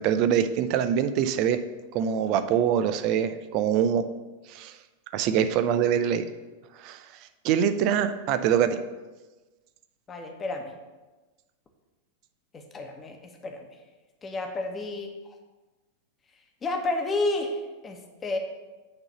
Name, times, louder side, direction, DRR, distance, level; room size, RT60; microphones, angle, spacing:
voice 1, 0.0-1.6 1.9-4.0 4.5-4.8 5.1-6.3 6.8-7.1 7.4-8.8, right 9 dB, 40° right, 11 dB, 0.6 m, -24 dB
voice 2, 10.1-10.7 12.5-13.7 14.2-15.1 16.6-18.4, left 2 dB, 20° left, 3 dB, 1.3 m, -31 dB
8.7 x 3.9 x 7.0 m, 1.2 s
figure-of-eight pair, 90°, 0 cm